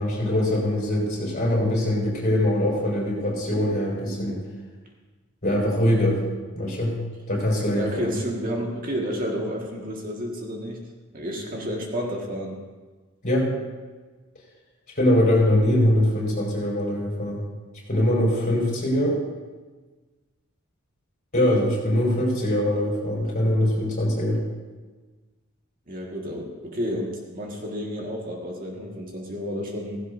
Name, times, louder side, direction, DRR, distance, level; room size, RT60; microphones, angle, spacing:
voice 1, 0.0-4.4 5.4-6.2 6.5-7.0 7.3-8.1 13.2-13.5 14.9-17.4 17.9-19.2 21.3-24.4, left 1 dB, 40° left, -3 dB, 5.1 m, -22 dB
voice 2, 7.7-10.8 11.1-12.6 25.9-30.0, equal, 45° right, -1 dB, 1.8 m, -31 dB
16.0 x 16.0 x 2.7 m, 1.3 s
head